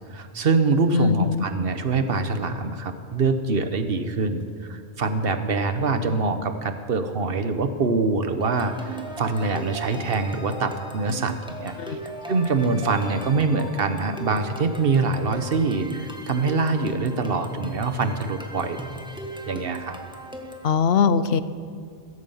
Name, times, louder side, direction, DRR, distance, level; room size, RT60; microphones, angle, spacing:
voice 1, 0.1-12.0 12.3-18.8 19.5-20.0, right 4 dB, 60° right, 9 dB, 1.2 m, -24 dB
voice 2, 0.9-1.4 11.8-12.0 20.6-21.4, left 6 dB, 65° left, 14 dB, 0.9 m, -21 dB
sound 1, 8.4-20.7, right 2 dB, 5° right, 1.5 m, -37 dB
16.0 x 14.5 x 5.7 m, 2.3 s
omnidirectional pair, 1.1 m